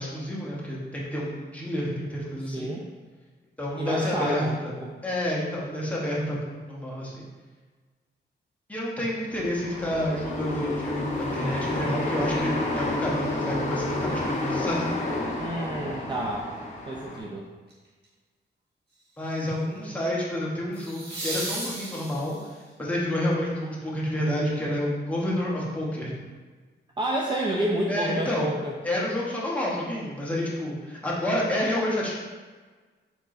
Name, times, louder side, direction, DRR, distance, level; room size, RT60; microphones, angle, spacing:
voice 1, 0.0-2.7 3.6-4.7 5.0-7.3 8.7-14.9 19.2-22.4 22.8-26.2 27.9-28.5 28.8-32.2, left 1 dB, 5° left, -6 dB, 0.9 m, -29 dB
voice 2, 2.4-2.9 3.8-5.0 15.4-16.5 16.9-17.4 27.0-28.7, right 1 dB, 25° right, -2 dB, 0.3 m, -29 dB
sound 1, 9.3-17.2, left 2 dB, 35° left, 0.8 m, -30 dB
sound 2, 17.7-18.0 20.7-22.6 25.5-25.6, right 2 dB, 60° right, 1.2 m, -35 dB
4.4 x 4.1 x 2.5 m, 1.4 s
wide cardioid pair, 145°, 19 cm